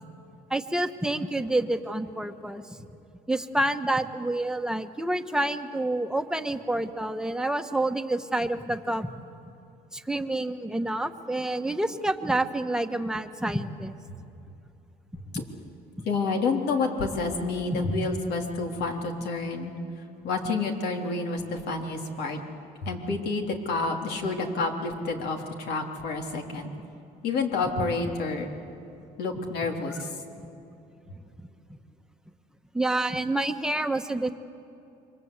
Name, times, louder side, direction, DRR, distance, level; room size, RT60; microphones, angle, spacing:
voice 1, 0.5-2.9 3.3-9.1 9.9-13.9 15.3-15.4 16.0-16.1 17.7-17.8 32.7-34.3, right 1 dB, 5° right, 7 dB, 1.3 m, -28 dB
voice 2, 16.1-19.7 20.2-22.4 22.8-26.7 27.2-28.5 29.2-30.1, left 3 dB, 75° left, 3 dB, 3.4 m, -29 dB
28.5 x 24.5 x 8.2 m, 2.8 s
cardioid pair, 110°, 17 cm